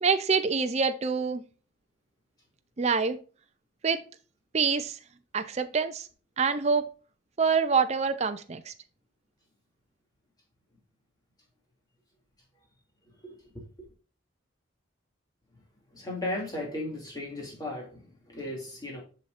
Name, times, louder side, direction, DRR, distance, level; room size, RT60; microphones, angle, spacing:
voice 1, 0.0-1.4 2.8-3.2 3.8-4.0 4.5-5.0 5.3-6.1 6.4-6.9 7.4-8.7, right 5 dB, 35° right, 0.5 m, -26 dB
voice 2, 13.2-13.6 15.9-19.0, left 1 dB, 20° left, 2.7 m, -36 dB
7.4 x 6.3 x 2.6 m
head